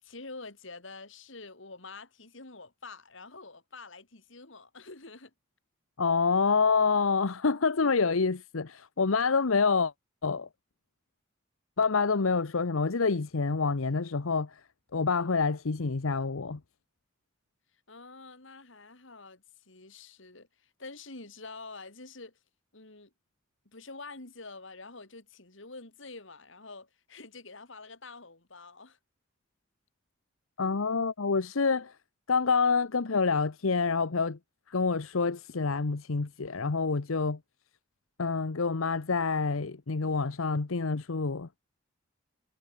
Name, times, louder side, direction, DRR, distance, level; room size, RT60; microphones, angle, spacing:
voice 1, 0.0-5.3 17.9-22.4 22.7-23.1 23.6-29.0, left 3 dB, 70° left, 3.0 m, -47 dB
voice 2, 6.0-9.9 10.2-10.5 11.8-14.6 14.9-16.6 30.6-32.0 32.3-34.4 34.7-37.4 38.2-41.5, left 4 dB, 90° left, 0.9 m, -27 dB
head